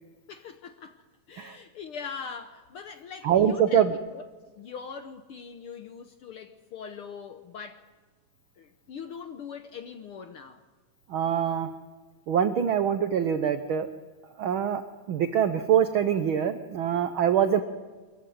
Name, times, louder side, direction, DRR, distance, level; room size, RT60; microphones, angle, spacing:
voice 1, 0.3-1.0 1.3-4.2 4.6-7.8 8.6-10.6, left 6 dB, 65° left, 7 dB, 1.4 m, -41 dB
voice 2, 3.2-3.9 11.1-11.7 12.3-13.9 14.4-14.8 15.1-17.6, right 8 dB, 85° right, 9 dB, 1.1 m, -24 dB
23.5 x 15.0 x 9.3 m, 1.3 s
omnidirectional pair, 3.5 m